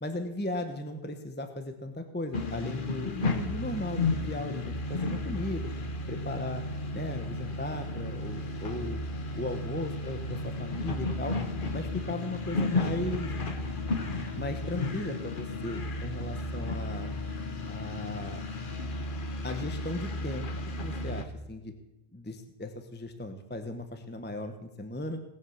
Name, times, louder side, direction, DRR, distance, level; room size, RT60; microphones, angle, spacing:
voice 1, 0.0-5.7 6.1-6.6 6.9-9.0 9.4-11.4 11.7-13.3 14.4-17.1 17.7-18.4 19.4-20.5 20.8-21.7 22.1-25.2, left 1 dB, 10° left, 7 dB, 0.9 m, -36 dB
sound 1, 2.3-21.2, left 2 dB, 50° left, 1.3 m, -33 dB
19.0 x 7.3 x 7.2 m, 0.95 s
omnidirectional pair, 1.2 m